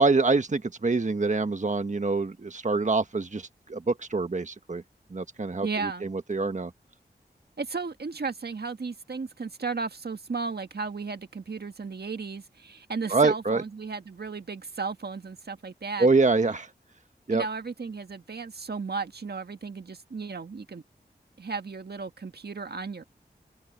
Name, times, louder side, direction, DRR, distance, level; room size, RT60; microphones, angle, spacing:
voice 1, 0.0-4.8 5.1-6.7 13.1-13.6 16.0-16.7 17.3-17.4, right 3 dB, 45° right, 1.4 m, -25 dB
voice 2, 5.6-6.1 7.6-16.1 17.3-20.8 21.4-23.0, right 4 dB, 70° right, 1.7 m, -34 dB
open air
wide cardioid pair, 55°, 18 cm